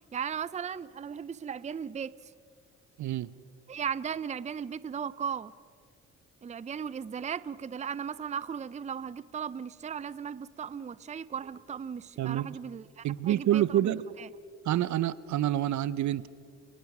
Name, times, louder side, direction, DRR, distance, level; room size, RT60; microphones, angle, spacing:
voice 1, 0.1-2.3 3.7-5.6 6.4-13.9 14.2-14.3, right 7 dB, 25° right, 18 dB, 0.5 m, -37 dB
voice 2, 3.0-3.3 12.2-12.6 13.0-14.0 14.6-16.3, right 12 dB, 70° right, 18 dB, 0.7 m, -27 dB
30.0 x 19.0 x 6.1 m, 2.3 s
cardioid pair, 90°, 30 cm